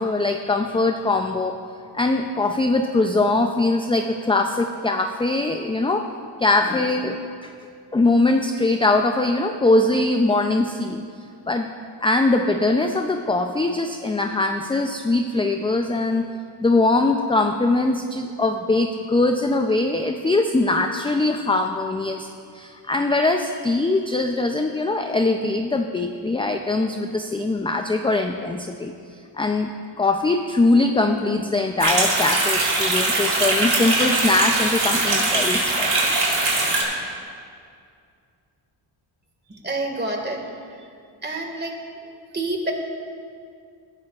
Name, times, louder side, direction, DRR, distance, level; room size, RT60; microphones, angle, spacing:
voice 1, 0.0-1.5 1.9-6.1 6.4-7.5 7.9-11.0 11.5-11.7 12.0-16.3 16.6-22.3 22.5-28.9 29.4-29.7 30.0-36.2, left 2 dB, 10° left, 5 dB, 0.4 m, -21 dB
sound 1, 31.8-36.8, right 2 dB, 50° right, 3.3 m, -21 dB
voice 2, 39.5-40.9 41.2-41.7 42.3-42.7, right 2 dB, 20° right, 2 dB, 1.9 m, -28 dB
17.5 x 12.5 x 2.4 m, 2.3 s
cardioid pair, 95°, 48 cm